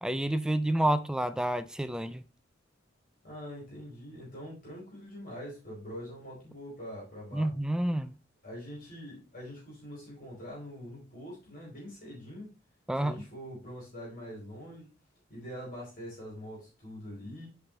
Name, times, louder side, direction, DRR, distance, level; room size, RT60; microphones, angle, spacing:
voice 1, 0.0-2.2 7.3-8.1 12.9-13.1, right 1 dB, 5° right, 0.4 m, -29 dB
voice 2, 3.2-7.5 8.4-12.5 13.0-14.9 15.3-17.5, equal, 45° left, 4.6 m, -44 dB
8.1 x 6.0 x 3.3 m
head